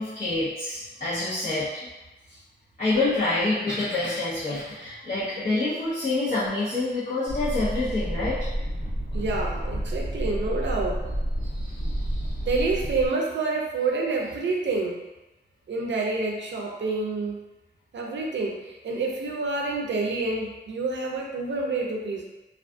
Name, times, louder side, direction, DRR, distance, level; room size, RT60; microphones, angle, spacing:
voice 1, 0.0-1.9 2.3-2.4 2.8-8.5 11.4-12.4, left 2 dB, 40° left, -13 dB, 0.8 m, -27 dB
sound 1, 7.3-13.1, equal, 60° left, 1.1 m, -30 dB
voice 2, 9.1-11.0 12.5-15.0 15.7-17.4 17.9-22.2, right 3 dB, 75° right, -1 dB, 0.5 m, -28 dB
2.4 x 2.3 x 2.5 m, 1.1 s
wide cardioid pair, 135°, 19 cm